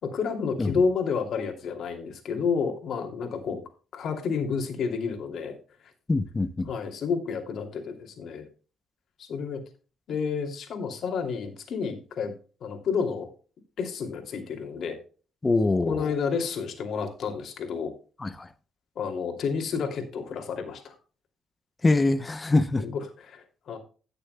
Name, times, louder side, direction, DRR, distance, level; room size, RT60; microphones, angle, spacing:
voice 1, 0.0-3.6 3.9-5.5 5.8-5.9 6.7-8.5 9.2-9.6 10.1-12.3 12.6-13.3 13.8-15.0 15.9-17.9 19.0-20.9 22.8-23.8, left 5 dB, 65° left, 2.7 m, -30 dB
voice 2, 6.1-6.7 15.4-16.1 18.2-18.5 21.8-22.8, left 2 dB, 25° left, 0.7 m, -24 dB
17.5 x 6.8 x 2.2 m
cardioid pair, 90°, 0 cm